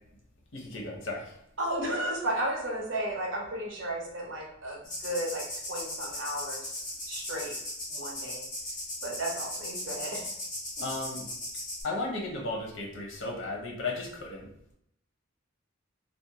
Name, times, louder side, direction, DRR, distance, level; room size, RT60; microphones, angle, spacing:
voice 1, 0.5-1.3 10.8-11.3 11.8-14.5, left 2 dB, 70° left, -1 dB, 0.7 m, -35 dB
voice 2, 1.6-6.7 7.1-7.5 7.9-8.4 9.0-10.3 10.8-10.9, right 1 dB, 70° right, -2 dB, 0.8 m, -34 dB
Cricket Croatia, 4.8-11.8, left 1 dB, 40° left, 0.9 m, -38 dB
2.5 x 2.1 x 2.8 m, 0.74 s
head